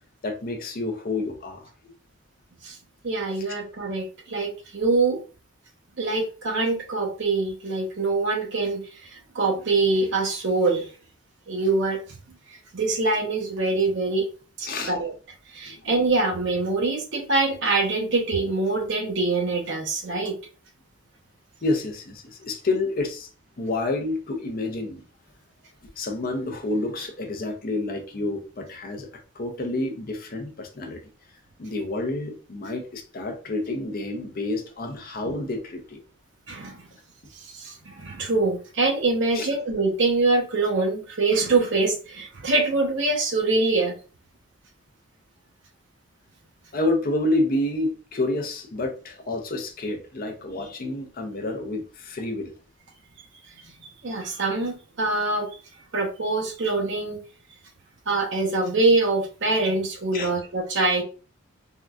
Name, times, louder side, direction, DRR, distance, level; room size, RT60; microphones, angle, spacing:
voice 1, 0.2-1.9 14.7-14.9 15.7-15.9 21.6-23.3 23.6-25.0 26.0-29.1 29.3-31.0 31.6-36.0 39.3-39.5 46.7-52.5 60.1-60.3, left 2 dB, 45° left, 4 dB, 0.5 m, -29 dB
voice 2, 3.0-5.2 6.0-9.1 9.3-10.9 11.5-12.0 12.7-14.3 14.6-15.1 15.5-20.3 36.5-36.8 37.3-43.9 54.0-55.5 55.9-57.2 58.1-61.0, right 3 dB, 55° right, 2 dB, 0.7 m, -24 dB
3.7 x 2.2 x 2.3 m, 0.36 s
head